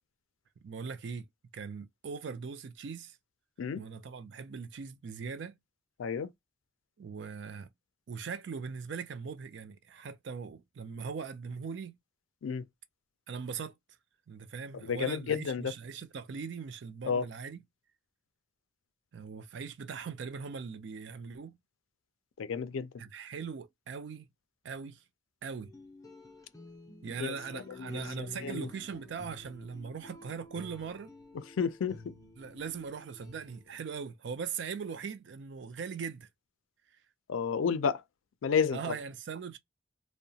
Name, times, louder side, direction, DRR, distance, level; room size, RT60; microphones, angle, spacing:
voice 1, 0.6-1.3 1.5-3.2 3.8-5.6 7.0-7.7 8.1-12.0 13.3-13.7 14.3-17.6 19.1-21.6 23.0-24.3 24.6-25.0 25.4-25.7 27.0-31.1 32.4-36.3 38.7-39.6, right 6 dB, 65° right, 0.4 m, -40 dB
voice 2, 6.0-6.3 12.4-12.6 14.9-15.7 17.0-17.3 22.4-22.9 27.2-28.0 28.4-28.7 31.6-32.1 37.3-38.0 38.4-38.9, left 6 dB, 85° left, 0.4 m, -31 dB
sound 1, 25.6-33.9, left 2 dB, 15° left, 0.5 m, -50 dB
2.7 x 2.1 x 2.6 m
head